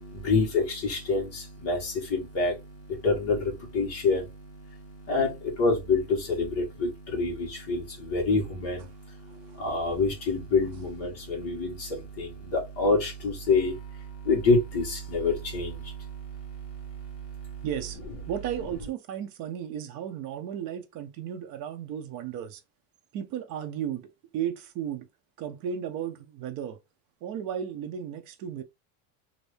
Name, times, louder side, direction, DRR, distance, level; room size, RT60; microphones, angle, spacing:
voice 1, 0.0-17.7, left 3 dB, 30° left, 1.2 m, -28 dB
voice 2, 17.6-18.0 18.3-22.6 23.1-25.1 25.4-26.8 27.2-28.6, right 9 dB, 40° right, 0.6 m, -34 dB
2.7 x 2.6 x 3.3 m
cardioid pair, 180°, 45 cm